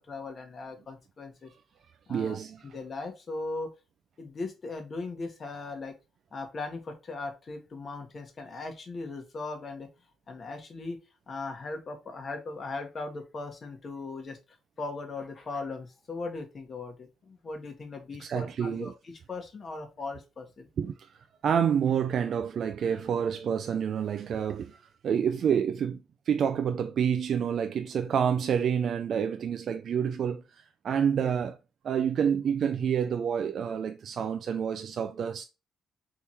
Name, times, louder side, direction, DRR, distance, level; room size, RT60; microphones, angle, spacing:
voice 1, 0.0-1.5 2.1-2.4 2.6-3.7 4.2-6.0 6.3-9.9 10.3-11.0 11.3-14.4 14.8-18.9 19.3-20.7, left 3 dB, 40° left, 1.3 m, -38 dB
voice 2, 2.1-2.6 18.2-18.9 20.8-21.1 21.4-24.8 25.0-31.6 31.8-35.4, right 8 dB, 60° right, 0.3 m, -28 dB
3.5 x 3.0 x 4.2 m
cardioid pair, 90°, 0 cm